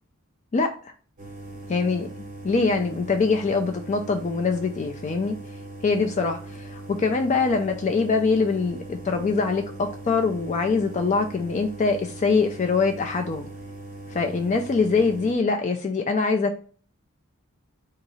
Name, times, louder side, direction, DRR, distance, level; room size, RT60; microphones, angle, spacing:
sound 1, 1.2-15.3, right 2 dB, 35° right, 1.0 m, -40 dB
voice 1, 1.7-2.1 2.4-5.4 5.8-13.5 14.1-16.6, left 4 dB, 35° left, 5 dB, 0.3 m, -23 dB
3.9 x 2.7 x 4.1 m, 0.43 s
head